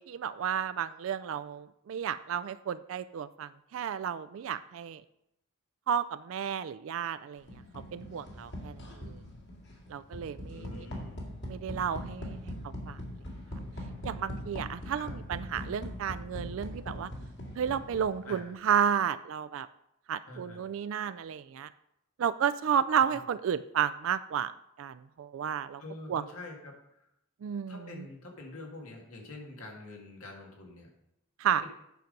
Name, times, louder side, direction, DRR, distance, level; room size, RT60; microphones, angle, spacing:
voice 1, 0.0-5.0 5.9-7.4 7.9-9.2 9.9-10.9 11.5-13.0 14.0-17.1 17.6-19.7 20.1-21.7 22.2-24.5 24.8-25.8 26.1-26.2 27.4-28.1 31.4-31.6, right 8 dB, 65° right, 13 dB, 0.3 m, -32 dB
sound 1, 7.5-18.4, left 1 dB, 55° left, 2.1 m, -41 dB
voice 2, 10.5-11.3 14.9-15.1 18.2-18.4 20.3-20.6 23.0-23.2 25.8-27.1 27.7-30.9 31.6-31.7, left 2 dB, 85° left, 0 dB, 2.2 m, -46 dB
9.3 x 5.9 x 5.3 m, 0.81 s
head